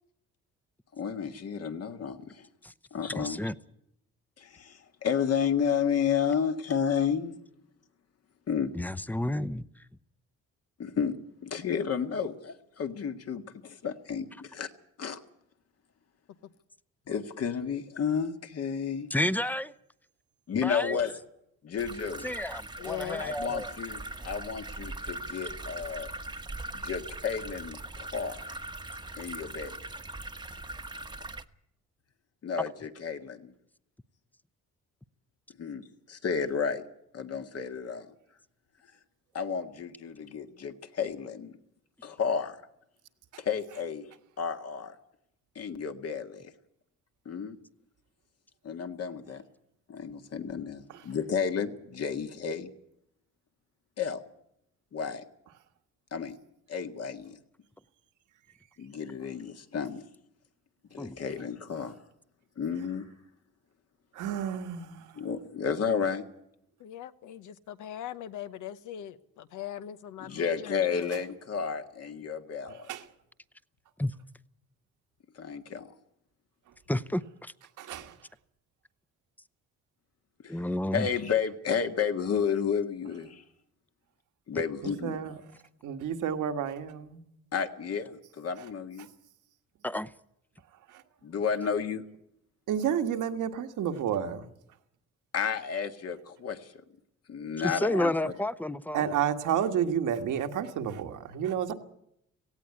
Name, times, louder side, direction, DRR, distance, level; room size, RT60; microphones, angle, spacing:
voice 1, 0.9-2.5 2.9-3.4 4.4-7.4 8.5-8.7 10.8-14.7 15.0-15.2 17.1-19.1 20.5-21.1 21.6-22.3 23.2-26.1 26.7-28.4 29.2-29.8 32.4-33.5 35.6-36.8 37.1-38.1 39.3-41.6 42.0-42.6 43.4-44.1 44.4-45.0 45.6-46.5 47.3-47.6 48.6-49.4 49.9-52.7 54.0-54.2 54.9-55.2 56.1-56.4 56.7-57.4 58.8-60.0 60.9-62.0 62.6-63.1 65.2-66.2 70.2-72.9 75.4-75.9 80.4-80.5 80.9-83.4 84.5-85.2 87.5-89.1 91.2-92.0 95.3-96.7 97.3-98.3, left 7 dB, 55° left, 1.8 m, -32 dB
voice 2, 3.1-3.5 8.7-9.6 19.1-19.7 20.6-21.0 22.2-23.7 61.0-61.2 74.0-74.1 76.9-77.5 80.5-81.1 89.8-90.1 97.6-99.0, left 1 dB, 5° left, 0.7 m, -31 dB
sound 1, 21.8-31.4, right 2 dB, 15° right, 1.1 m, -40 dB
voice 3, 22.8-23.2 66.8-70.8, left 11 dB, 85° left, 1.1 m, -40 dB
voice 4, 64.1-65.1 72.7-73.0 77.8-78.1 84.8-85.3 85.8-87.2 90.9-91.0 92.7-94.4 98.9-101.7, right 8 dB, 80° right, 1.7 m, -31 dB
17.5 x 16.0 x 9.7 m
cardioid pair, 90°, 30 cm